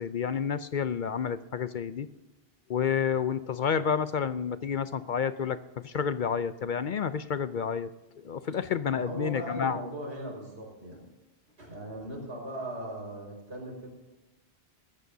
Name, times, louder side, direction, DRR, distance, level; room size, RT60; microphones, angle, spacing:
voice 1, 0.0-2.1 2.7-7.9 8.2-9.8, left 7 dB, 55° left, 13 dB, 0.6 m, -30 dB
voice 2, 8.8-11.0 11.6-13.9, right 1 dB, 80° right, -1 dB, 5.3 m, -39 dB
22.0 x 14.0 x 2.7 m, 1.1 s
omnidirectional pair, 1.1 m